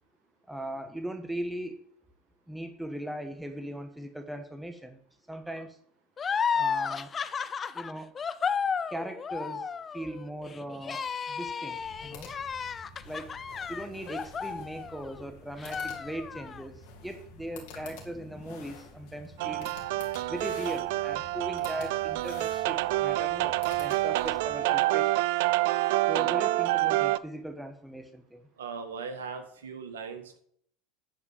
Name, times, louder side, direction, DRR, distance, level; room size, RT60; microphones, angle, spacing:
voice 1, 0.5-1.8 2.5-5.0 5.3-5.8 6.5-7.1 7.7-8.1 8.9-12.3 13.0-13.3 13.7-19.7 20.3-25.3 26.1-28.5, right 1 dB, 5° right, 6 dB, 1.4 m, -39 dB
sound 1, 6.2-15.2 15.6-16.6, left 6 dB, 30° left, 0.6 m, -33 dB
sound 2, 11.7-24.7, left 3 dB, 70° left, 3.2 m, -49 dB
sound 3, 19.4-27.2, right 17 dB, 70° right, 0.4 m, -27 dB
voice 2, 28.6-30.4, right 5 dB, 85° right, 7 dB, 1.8 m, -39 dB
11.0 x 4.9 x 7.3 m, 0.63 s
hypercardioid pair, 90°, 0 cm